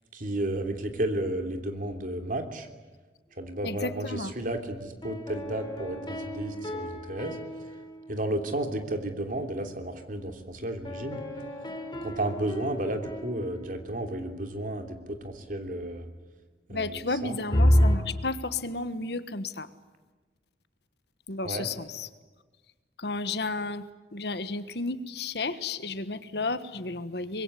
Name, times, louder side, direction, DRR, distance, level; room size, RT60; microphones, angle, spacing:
voice 1, 0.1-2.7 3.4-7.4 8.1-11.2 12.0-16.1 16.7-17.4 21.4-21.7, right 1 dB, 45° right, 6 dB, 3.1 m, -32 dB
voice 2, 3.6-4.3 16.7-19.7 21.3-22.1 23.0-23.9 24.1-27.4, left 3 dB, 65° left, 12 dB, 1.4 m, -32 dB
sound 1, 5.0-8.8 10.9-14.4 17.5-18.0, equal, 25° left, 3.2 m, -29 dB
25.0 x 21.5 x 9.9 m, 1.3 s
head